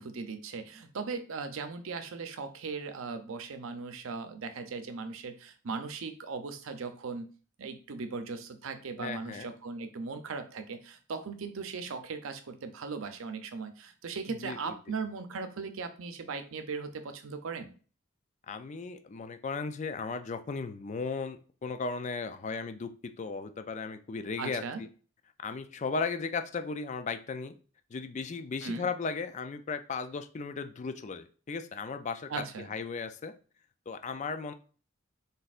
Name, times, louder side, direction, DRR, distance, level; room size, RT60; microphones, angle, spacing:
voice 1, 0.0-7.3 7.6-17.7 24.4-24.8 28.6-28.9 32.3-32.7, right 4 dB, 90° right, 8 dB, 0.6 m, -38 dB
voice 2, 9.0-9.5 14.4-14.7 18.5-24.9 25.4-27.6 27.9-33.3 33.9-34.5, left 4 dB, 35° left, 9 dB, 0.4 m, -36 dB
4.1 x 3.9 x 2.5 m, 0.39 s
head